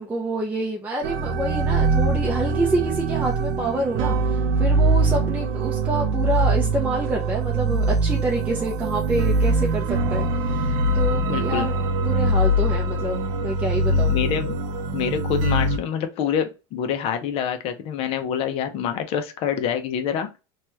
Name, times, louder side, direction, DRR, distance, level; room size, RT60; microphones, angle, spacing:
voice 1, 0.0-4.2 4.6-11.7 12.0-14.2, right 2 dB, 10° right, 0.5 m, -27 dB
sound 1, 1.0-15.8, right 2 dB, 65° right, 0.5 m, -22 dB
voice 2, 11.3-11.7 13.4-13.5 13.9-14.6 14.9-20.3, left 8 dB, 45° left, 0.5 m, -26 dB
3.0 x 2.2 x 3.0 m
supercardioid pair, 140°, 14 cm